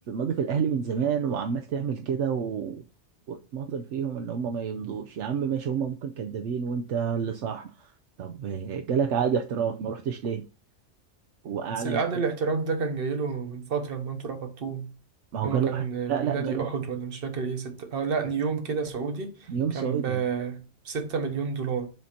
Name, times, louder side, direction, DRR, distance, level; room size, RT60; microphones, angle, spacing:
voice 1, 0.0-2.8 3.3-7.9 8.2-10.4 11.4-12.0 15.3-16.7 19.5-20.2, right 7 dB, 75° right, 0.9 m, -29 dB
voice 2, 11.8-14.9 15.4-19.5 19.7-21.9, right 5 dB, 50° right, 1.2 m, -30 dB
7.5 x 2.8 x 5.8 m
omnidirectional pair, 1.2 m